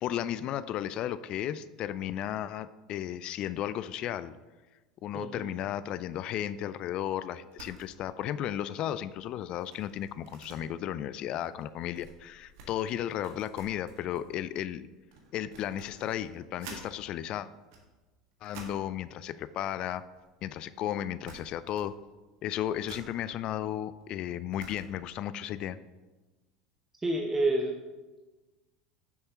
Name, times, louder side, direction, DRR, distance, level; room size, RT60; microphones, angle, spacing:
voice 1, 0.0-4.3 5.0-14.9 15.3-17.5 18.4-20.0 20.4-21.9 22.4-25.8, left 11 dB, 45° left, 15 dB, 0.3 m, -34 dB
voice 2, 5.1-5.5 27.0-27.8, right 2 dB, 15° right, 1 dB, 0.8 m, -28 dB
sound 1, 7.5-7.9 8.2-8.4 8.8-16.9 17.5-18.9 19.8-20.6 20.9-21.0 21.2-22.0 22.3-25.1, right 4 dB, 60° right, 1.5 m, -51 dB
10.0 x 6.4 x 2.9 m, 1.2 s
figure-of-eight pair, 75°, 2 cm